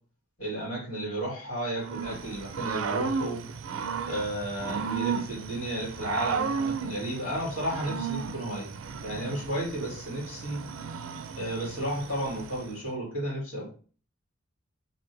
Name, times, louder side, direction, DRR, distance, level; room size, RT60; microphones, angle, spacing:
voice 1, 0.4-3.4 4.0-8.7 9.0-10.6 11.4-13.7, right 1 dB, 75° left, -4 dB, 1.9 m, -33 dB
Growling / Cricket, 1.8-12.7, right 5 dB, 75° right, 0.4 m, -34 dB
3.0 x 2.6 x 4.4 m, 0.39 s
head